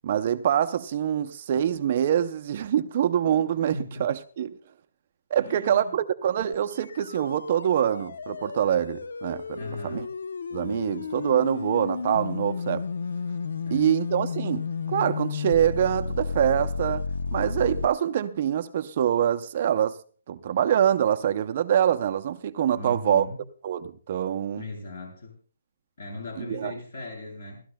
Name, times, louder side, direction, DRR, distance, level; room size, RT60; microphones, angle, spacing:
voice 1, 0.0-4.6 5.3-9.6 9.8-10.1 10.5-12.8 13.7-17.0 17.3-20.0 20.3-23.3 23.6-24.6 26.4-26.7, right 10 dB, 30° right, 0.5 m, -25 dB
voice 2, 3.7-4.1 5.4-5.9 9.6-10.1 13.6-13.9 22.7-23.4 24.5-25.4 26.0-27.6, left 2 dB, 60° left, 7.6 m, -38 dB
sound 1, 6.5-17.9, left 5 dB, 80° left, 0.6 m, -32 dB
27.5 x 13.0 x 2.2 m
hypercardioid pair, 175°, 0 cm